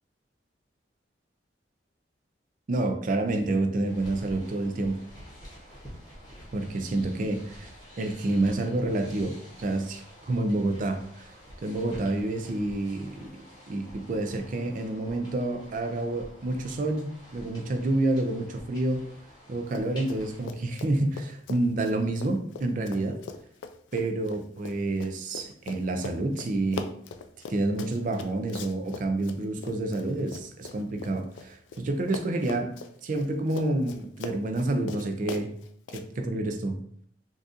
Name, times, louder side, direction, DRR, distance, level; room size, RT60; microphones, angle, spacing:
voice 1, 2.7-5.0 6.5-7.7 8.0-11.3 11.6-13.4 13.7-19.0 19.5-23.2 23.9-26.9 27.5-32.7 33.0-35.5 35.9-36.8, right 2 dB, 45° right, 5 dB, 0.4 m, -28 dB
sound 1, 3.8-20.5, equal, 25° left, 0.9 m, -49 dB
Run, 19.7-20.2 20.5-31.8 32.1-36.0, left 5 dB, 85° left, 0.3 m, -41 dB
3.9 x 2.4 x 2.5 m, 0.63 s
head